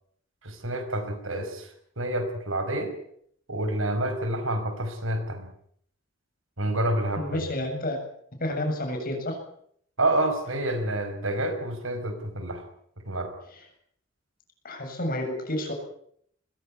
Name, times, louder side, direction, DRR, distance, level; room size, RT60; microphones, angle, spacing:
voice 1, 0.4-1.7 2.0-2.9 3.5-5.5 6.6-7.4 10.0-12.6 13.1-13.3, right 1 dB, 85° right, 7 dB, 5.4 m, -28 dB
voice 2, 7.2-8.0 8.4-9.4 13.5-13.7 14.6-15.7, left 1 dB, 45° left, 4 dB, 7.6 m, -30 dB
21.0 x 16.0 x 9.8 m, 0.66 s
head